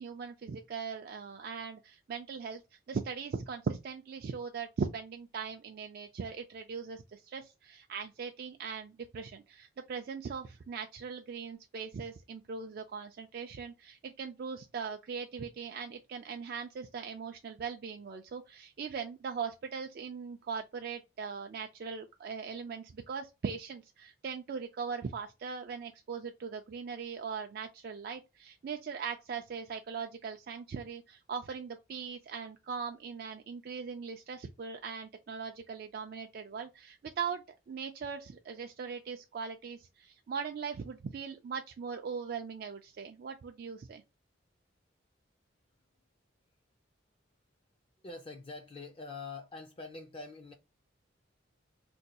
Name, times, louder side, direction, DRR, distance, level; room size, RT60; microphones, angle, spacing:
voice 1, 0.0-2.6 2.9-44.0, right 6 dB, 50° right, 0.3 m, -40 dB
voice 2, 48.0-50.5, left 3 dB, 30° left, 0.4 m, -44 dB
2.6 x 2.2 x 4.0 m
head